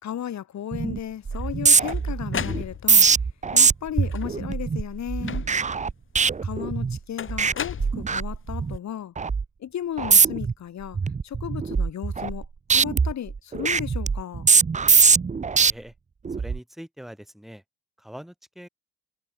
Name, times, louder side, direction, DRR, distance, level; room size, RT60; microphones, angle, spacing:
voice 1, 0.0-3.1 3.5-5.5 6.4-9.1 9.6-11.0 11.2-14.5, left 10 dB, 65° left, 4.0 m, -34 dB
sound 1, 0.7-1.0 1.3-7.0 7.3-7.5 7.8-8.8 9.2-9.4 10.0-10.5 10.9-12.4 12.7-15.7 16.3-16.6, right 5 dB, 25° right, 0.8 m, -22 dB
sound 2, 1.3-3.2 4.0-4.5 5.2-5.8 7.2-8.5, left 8 dB, 40° left, 1.3 m, -35 dB
voice 2, 16.4-17.6 18.0-18.7, equal, ahead, 3.1 m, -42 dB
cardioid pair, 90°, 30 cm